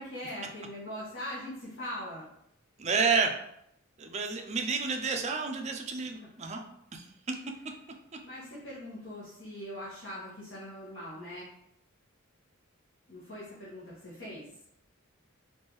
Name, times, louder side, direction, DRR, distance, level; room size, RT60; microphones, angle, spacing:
voice 1, 0.0-2.2 8.2-11.5 13.1-14.4, left 1 dB, 55° left, -10 dB, 1.2 m, -41 dB
voice 2, 2.8-3.3 4.0-6.6 6.9-7.3, right 5 dB, 30° right, 4 dB, 0.4 m, -30 dB
4.5 x 2.6 x 3.1 m, 0.77 s
head